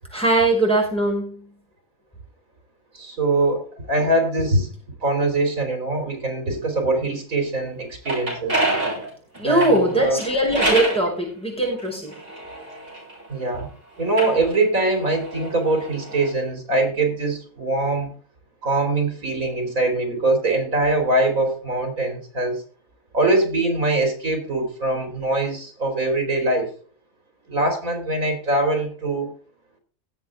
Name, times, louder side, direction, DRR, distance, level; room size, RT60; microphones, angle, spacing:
voice 1, 0.1-1.4 9.4-12.2, right 1 dB, 5° left, -2 dB, 5.5 m, -21 dB
voice 2, 2.9-4.7 5.0-8.6 9.4-10.2 13.3-13.7 14.0-18.1 18.6-22.6 23.1-26.7 27.5-29.3, right 2 dB, 75° right, 4 dB, 3.7 m, -22 dB
sound 1, 7.8-11.0 11.8-13.5 14.0-16.3, right 1 dB, 40° right, 7.6 m, -27 dB
18.0 x 7.5 x 3.6 m, 0.42 s
omnidirectional pair, 1.5 m